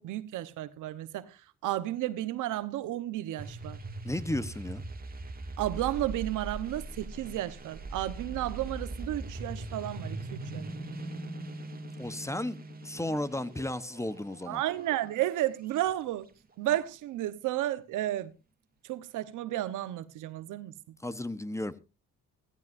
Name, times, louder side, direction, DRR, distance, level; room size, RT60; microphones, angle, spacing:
voice 1, 0.0-3.8 5.6-10.7 14.5-16.3 16.6-18.3 18.8-20.9, right 14 dB, 85° right, 1.1 m, -33 dB
sound 1, 3.4-15.8, right 2 dB, 30° right, 2.3 m, -41 dB
voice 2, 4.0-4.8 12.0-12.6 12.8-14.6 21.0-21.7, left 1 dB, 10° left, 1.0 m, -34 dB
16.5 x 14.5 x 2.6 m
cardioid pair, 90°, 30 cm